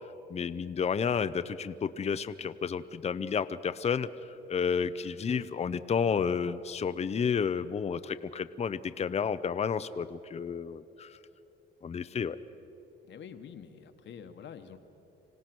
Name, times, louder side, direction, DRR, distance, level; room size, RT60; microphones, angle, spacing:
voice 1, 0.3-4.1 4.5-11.2 11.8-12.4, left 6 dB, 30° left, 12 dB, 0.6 m, -31 dB
voice 2, 13.0-14.8, left 7 dB, 65° left, 7 dB, 1.3 m, -47 dB
26.0 x 17.0 x 6.1 m, 2.9 s
cardioid pair, 90°, 20 cm